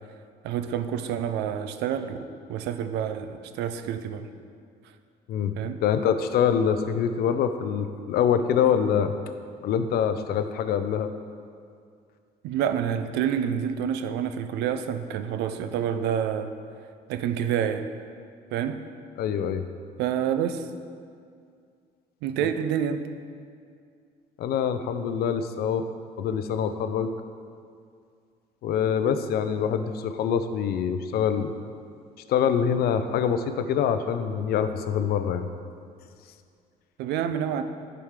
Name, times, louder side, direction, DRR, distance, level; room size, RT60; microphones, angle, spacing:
voice 1, 0.4-2.2 2.5-4.3 5.6-5.8 12.4-16.5 17.1-17.9 18.5-18.9 20.0-20.7 22.2-23.1 37.0-37.6, right 8 dB, 85° right, 9 dB, 0.5 m, -28 dB
voice 2, 5.8-9.1 9.6-11.1 19.2-19.7 24.4-25.8 26.2-27.1 28.6-31.7 32.3-35.5, left 8 dB, 65° left, 10 dB, 0.5 m, -25 dB
9.6 x 4.8 x 3.7 m, 2.3 s
cardioid pair, 110°, 17 cm